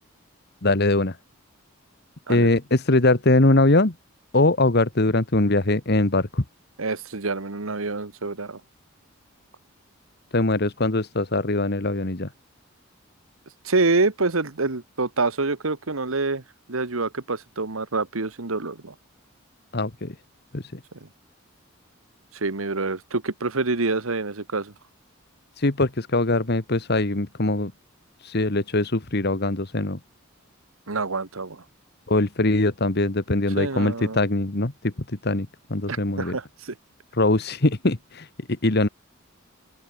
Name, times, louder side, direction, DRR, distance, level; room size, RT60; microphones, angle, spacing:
voice 1, 0.6-1.2 2.3-3.9 4.3-6.4 10.3-12.3 19.7-20.1 20.5-20.7 25.6-27.7 28.2-30.0 32.1-34.9 35.2-36.4 37.1-38.3 38.6-38.9, left 2 dB, 50° left, 1.5 m, -22 dB
voice 2, 6.8-8.6 13.6-16.4 16.7-18.9 22.3-24.7 30.9-31.6 33.6-34.2 35.9-36.7, right 3 dB, 85° right, 1.6 m, -26 dB
open air
head